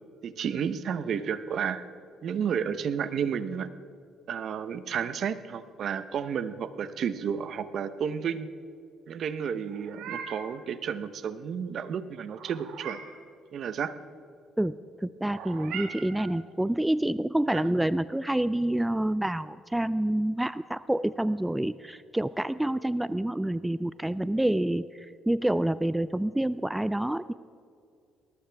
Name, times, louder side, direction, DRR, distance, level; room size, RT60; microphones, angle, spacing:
voice 1, 0.2-1.8 2.2-3.7 4.3-8.5 9.1-13.0 13.5-13.9 17.5-17.6, right 7 dB, 60° right, 12 dB, 0.8 m, -31 dB
Meow, 9.6-10.6 12.3-13.2 15.3-16.4, right 7 dB, 80° right, 1.8 m, -41 dB
voice 2, 15.0-27.3, right 1 dB, 5° right, 15 dB, 0.3 m, -28 dB
20.5 x 19.0 x 3.5 m, 2.4 s
cardioid pair, 110°, 0 cm